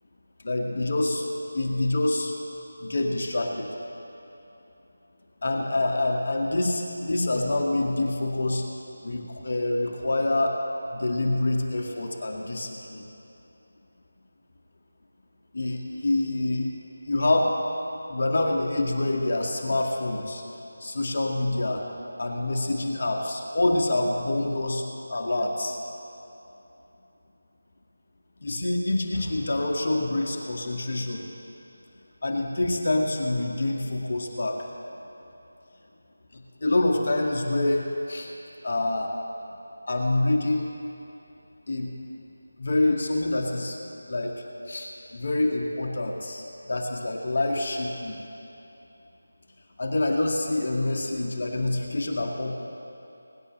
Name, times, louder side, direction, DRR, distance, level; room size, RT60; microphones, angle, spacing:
voice 1, 0.4-1.3 1.5-2.3 2.8-3.7 5.4-8.7 9.0-10.6 10.9-13.1 15.5-16.8 17.0-17.6 18.1-20.4 20.8-21.8 22.2-24.8 25.1-25.8 28.4-31.2 32.2-34.7 36.3-38.3 38.6-39.1 39.9-40.7 41.7-41.9 42.6-43.8 44.1-48.2 49.8-52.5, left 2 dB, 55° left, 1 dB, 1.9 m, -26 dB
24.0 x 11.0 x 3.2 m, 2.9 s
figure-of-eight pair, 165°, 0 cm